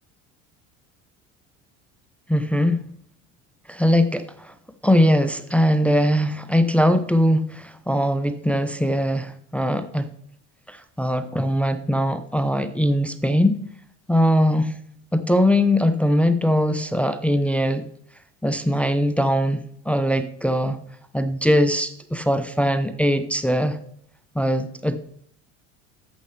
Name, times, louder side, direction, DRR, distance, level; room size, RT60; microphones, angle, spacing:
voice 1, 2.3-2.9 3.7-4.5 4.8-10.1 10.7-13.6 14.1-14.8 15.1-17.8 18.4-20.8 21.1-23.8 24.3-25.0, equal, 5° left, 9 dB, 0.7 m, -21 dB
11.5 x 7.7 x 3.3 m, 0.65 s
hypercardioid pair, 70°, 38 cm